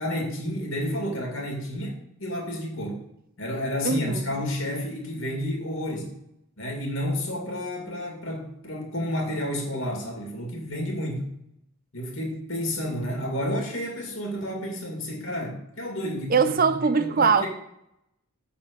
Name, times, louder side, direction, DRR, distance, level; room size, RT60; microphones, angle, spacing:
voice 1, 0.0-3.0 3.4-6.1 6.6-11.3 11.9-16.6 17.0-17.5, left 1 dB, 60° left, 2.5 m, -30 dB
voice 2, 3.8-4.2 16.3-17.5, right 5 dB, 40° right, 0.5 m, -21 dB
7.8 x 4.4 x 6.9 m
head